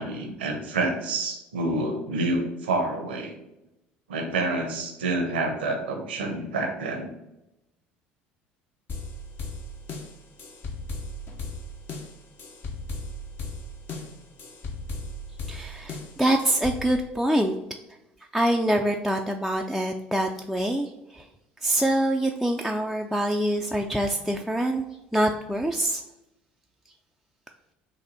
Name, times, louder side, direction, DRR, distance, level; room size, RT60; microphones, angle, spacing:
voice 1, 0.0-3.3 4.1-7.1, right 2 dB, 85° right, 4 dB, 0.8 m, -28 dB
sound 1, 8.9-16.9, left 2 dB, 45° left, 0.8 m, -37 dB
voice 2, 15.5-17.5 18.3-21.3 21.6-24.8 25.1-26.0, right 1 dB, ahead, 1 dB, 0.4 m, -25 dB
4.1 x 2.6 x 4.0 m, 0.91 s
hypercardioid pair, 70°, 5 cm